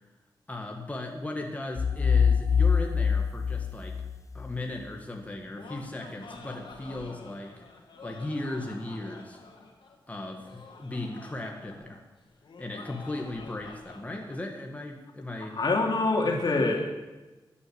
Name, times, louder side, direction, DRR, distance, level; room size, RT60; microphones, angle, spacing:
voice 1, 0.5-4.1 4.3-7.6 8.0-9.4 10.1-12.0 12.6-15.6 16.3-16.7, left 2 dB, 20° left, 1 dB, 1.9 m, -37 dB
sound 1, 1.8-4.6, left 6 dB, 40° left, 0.6 m, -24 dB
Laughter, 5.5-14.4, left 4 dB, 85° left, 2.6 m, -48 dB
voice 2, 15.5-16.9, left 3 dB, 60° left, 2 dB, 2.8 m, -25 dB
12.5 x 10.0 x 8.7 m, 1.1 s
wide cardioid pair, 100°, 8 cm